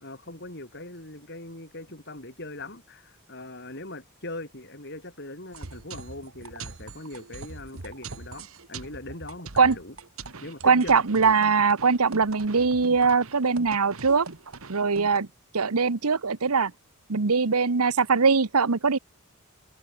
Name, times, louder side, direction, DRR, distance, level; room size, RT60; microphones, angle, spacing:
voice 1, 0.0-9.9 10.4-11.0, left 2 dB, 50° left, 6.4 m, -41 dB
sound 1, 5.5-15.2, right 4 dB, 70° right, 1.6 m, -42 dB
voice 2, 10.6-14.3 14.7-15.3 15.5-16.7 17.1-19.0, right 5 dB, 90° right, 1.0 m, -21 dB
head